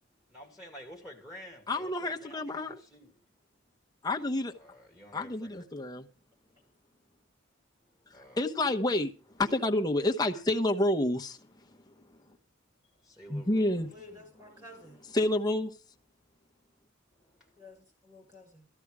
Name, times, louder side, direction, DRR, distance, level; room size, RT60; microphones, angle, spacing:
voice 1, 0.3-3.1 4.6-5.6 8.1-8.4 13.0-13.8 14.1-14.2 17.4-17.5, equal, 5° right, 2.2 m, -50 dB
voice 2, 1.7-2.8 4.0-4.5 5.1-6.1 8.4-9.1 9.4-11.4 13.3-13.9 15.1-15.7, left 1 dB, 20° left, 1.0 m, -28 dB
voice 3, 13.9-15.0 17.6-18.7, left 2 dB, 20° right, 6.6 m, -52 dB
14.0 x 11.0 x 4.9 m
head